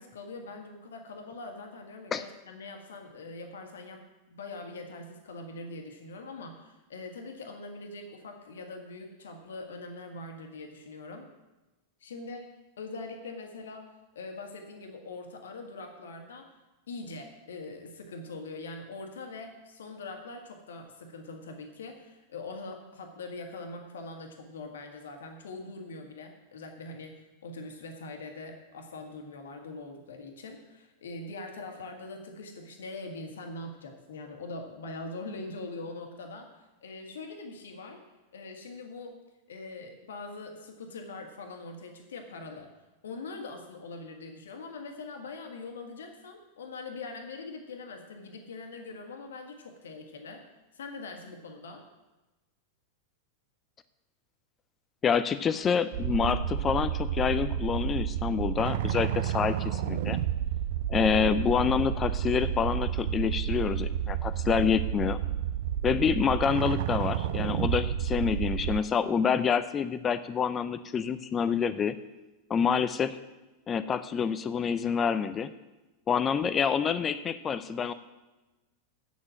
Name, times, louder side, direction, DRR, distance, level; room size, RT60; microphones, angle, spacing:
voice 1, 0.0-4.0 4.3-11.3 12.0-12.5 12.8-13.9 14.1-16.5 16.9-27.1 27.4-36.5 36.8-38.0 38.3-39.2 39.5-42.7 43.0-50.4 50.7-51.8, left 3 dB, 65° left, 4 dB, 1.6 m, -42 dB
voice 2, 55.0-60.2 60.9-65.2 65.8-71.9 72.5-73.2 73.7-75.5 76.1-77.9, left 7 dB, 25° left, 13 dB, 0.5 m, -27 dB
sound 1, 55.9-68.8, right 10 dB, 55° right, 0.5 m, -30 dB
8.1 x 7.4 x 7.5 m, 1.1 s
figure-of-eight pair, 90°, 0 cm